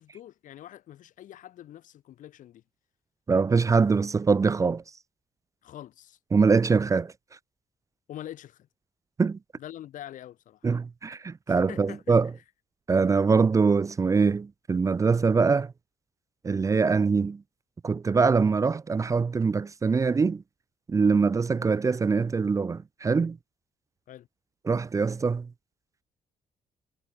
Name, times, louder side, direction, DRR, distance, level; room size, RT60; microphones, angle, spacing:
voice 1, 0.0-2.6 5.6-6.2 8.1-8.7 9.5-10.7 11.5-12.2 24.1-24.3, left 12 dB, 75° left, 5.8 m, -44 dB
voice 2, 3.3-4.8 6.3-7.1 9.2-9.4 10.6-12.3 12.9-15.7 16.4-17.4 17.8-20.4 20.9-23.4 24.7-25.5, right 4 dB, 25° right, 0.5 m, -23 dB
cardioid pair, 120°, 13 cm